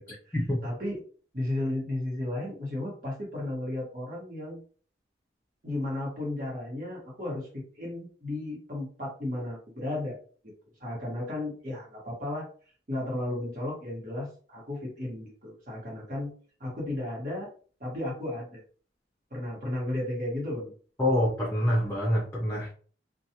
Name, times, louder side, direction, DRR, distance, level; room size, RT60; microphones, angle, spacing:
voice 1, 0.6-1.0 1.3-4.6 5.6-10.2 10.4-10.5 10.8-12.5 12.9-16.3 16.6-17.5 17.8-18.6 19.3-20.7, left 1 dB, 45° right, -4 dB, 1.3 m, -34 dB
voice 2, 21.0-22.7, left 1 dB, 15° left, -3 dB, 0.6 m, -26 dB
2.5 x 2.3 x 2.8 m, 0.42 s
head